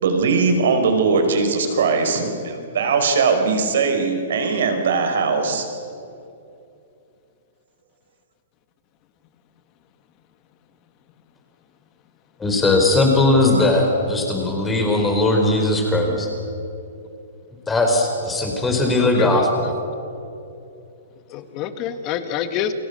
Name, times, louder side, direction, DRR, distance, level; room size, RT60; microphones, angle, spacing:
voice 1, 0.0-5.6, right 4 dB, 70° right, 6 dB, 4.8 m, -20 dB
voice 2, 12.4-16.3 17.7-19.7, left 2 dB, 10° left, 2 dB, 4.8 m, -19 dB
voice 3, 19.0-19.5 21.3-22.7, left 10 dB, 30° left, 9 dB, 1.7 m, -26 dB
30.0 x 21.5 x 6.9 m, 2.7 s
hypercardioid pair, 155°, 0 cm